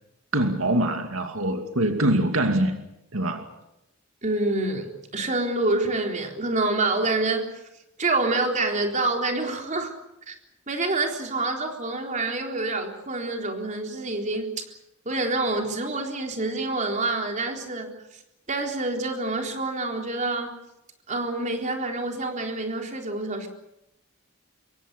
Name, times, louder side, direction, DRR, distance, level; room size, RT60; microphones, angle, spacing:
voice 1, 0.3-2.7 3.1-3.5, right 1 dB, 75° right, 5 dB, 2.5 m, -23 dB
voice 2, 4.2-7.6 8.0-10.0 10.3-10.4 10.7-14.6 15.1-18.2 18.5-20.6 21.1-23.5, right 2 dB, 35° right, 3 dB, 3.9 m, -27 dB
26.0 x 23.0 x 6.9 m, 0.88 s
head